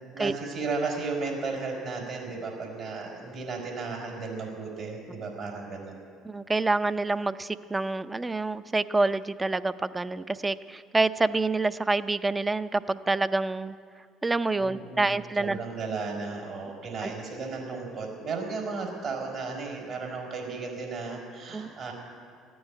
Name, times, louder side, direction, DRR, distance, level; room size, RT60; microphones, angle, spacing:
voice 1, 0.1-6.0 14.6-21.9, right 4 dB, 60° right, 0 dB, 4.9 m, -34 dB
voice 2, 6.2-13.7 14.2-15.6 17.0-17.1 21.5-21.7, right 3 dB, 20° right, 13 dB, 0.6 m, -27 dB
14.5 x 9.5 x 9.9 m, 2.4 s
hypercardioid pair, 70°, 0 cm